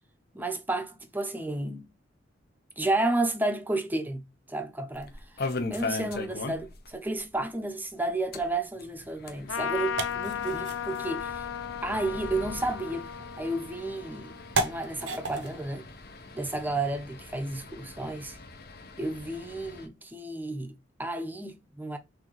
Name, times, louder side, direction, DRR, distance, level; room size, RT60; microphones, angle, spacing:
voice 1, 0.3-1.9 2.8-5.1 5.7-11.4 11.8-13.1 13.4-15.9 16.3-18.4 19.0-22.0, right 2 dB, 10° right, 0.6 m, -32 dB
sound 1, 4.9-6.9 7.2-7.3 7.6-7.7 8.2-19.9, left 3 dB, 55° left, 0.8 m, -40 dB
sound 2, 8.7-17.4, right 3 dB, 70° right, 0.7 m, -38 dB
Trumpet, 9.5-15.3, left 8 dB, 90° left, 0.5 m, -36 dB
6.1 x 2.7 x 3.1 m
head